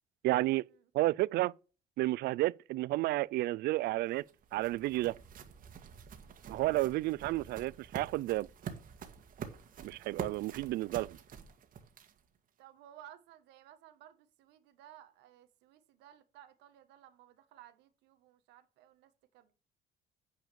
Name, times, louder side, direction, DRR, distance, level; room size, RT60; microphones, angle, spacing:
voice 1, 0.2-0.6 0.9-1.5 2.0-4.2 4.5-5.2 6.5-8.5 9.8-11.2, right 17 dB, 70° right, 0.4 m, -31 dB
sound 1, 3.8-12.4, right 7 dB, 55° right, 1.7 m, -47 dB
voice 2, 6.1-6.4 12.6-19.5, right 11 dB, 90° right, 1.4 m, -57 dB
9.3 x 4.9 x 6.9 m
cardioid pair, 110°, 17 cm